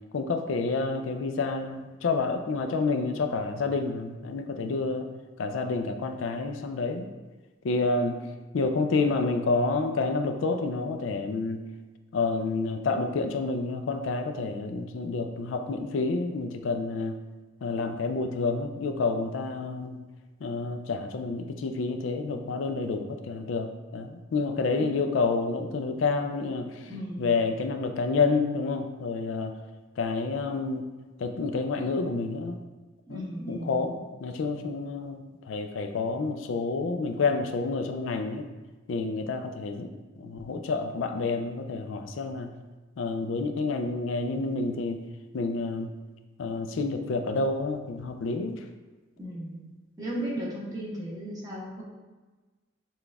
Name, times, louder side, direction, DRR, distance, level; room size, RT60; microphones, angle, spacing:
voice 1, 0.1-5.1 5.4-7.1 7.6-8.2 8.5-11.7 12.1-17.2 17.6-20.0 20.4-26.9 27.2-29.6 30.0-30.9 31.2-32.6 33.1-38.5 38.9-39.9 40.2-42.5 43.0-45.0 45.3-45.9 46.4-48.6, left 3 dB, 75° left, 6 dB, 0.4 m, -29 dB
voice 2, 26.8-27.3 33.1-33.9 49.2-49.6 50.0-51.8, right 1 dB, 20° right, -6 dB, 1.0 m, -35 dB
5.9 x 2.4 x 3.4 m, 1.3 s
head